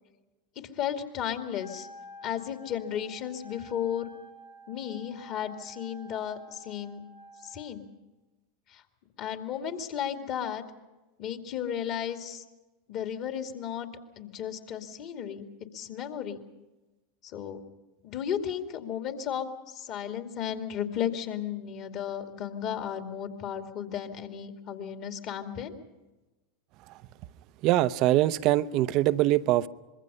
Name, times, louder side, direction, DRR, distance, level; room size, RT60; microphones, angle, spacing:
voice 1, 0.8-1.9 2.2-4.1 4.7-7.0 7.4-7.9 8.7-8.8 9.2-10.6 11.2-12.4 12.9-13.9 14.2-15.5 15.7-16.4 17.3-17.6 18.0-19.4 19.7-25.7, left 9 dB, 45° left, 5 dB, 2.4 m, -34 dB
Wind instrument woodwind instrument, 1.6-7.7, equal, 80° left, 3.4 m, -50 dB
voice 2, 27.6-29.7, right 15 dB, 50° right, 15 dB, 0.7 m, -23 dB
25.0 x 22.5 x 5.6 m, 1.1 s
figure-of-eight pair, 85°, 0 cm